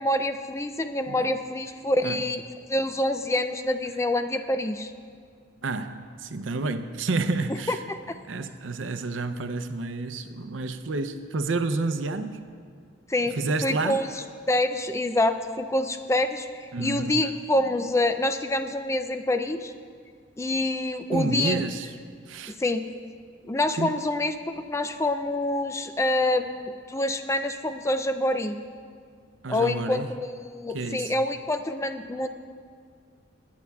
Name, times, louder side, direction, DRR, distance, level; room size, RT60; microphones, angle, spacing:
voice 1, 0.0-2.4 2.7-4.9 7.7-7.8 8.1-8.2 13.1-19.7 20.4-21.6 22.6-22.8 23.5-26.6 26.9-28.6 29.5-32.3, left 1 dB, 15° left, 8 dB, 0.4 m, -26 dB
voice 2, 5.6-7.8 8.3-12.4 13.3-14.0 16.7-17.2 21.1-21.9 22.3-22.6 23.8-24.0 29.4-30.1 30.7-31.1, right 3 dB, 90° right, 10 dB, 0.6 m, -29 dB
21.5 x 9.5 x 2.3 m, 2.1 s
head